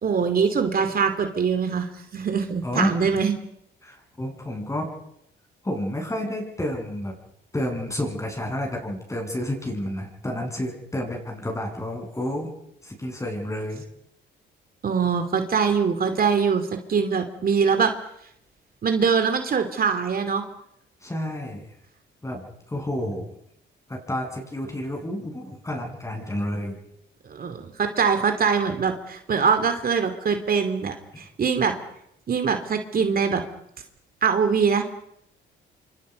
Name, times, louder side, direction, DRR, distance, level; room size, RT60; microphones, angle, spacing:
voice 1, 0.0-1.9 2.1-3.3 14.8-17.9 18.8-20.4 27.3-31.7 32.3-33.4 34.2-34.8, right 6 dB, 50° right, 7 dB, 2.8 m, -23 dB
voice 2, 2.6-3.1 3.8-4.9 5.6-7.1 7.5-12.5 12.8-13.8 21.0-21.6 22.2-22.4 22.7-23.3 23.9-26.8, left 1 dB, 15° left, 2 dB, 7.8 m, -30 dB
28.5 x 25.5 x 5.4 m, 0.76 s
cardioid pair, 90°, 20 cm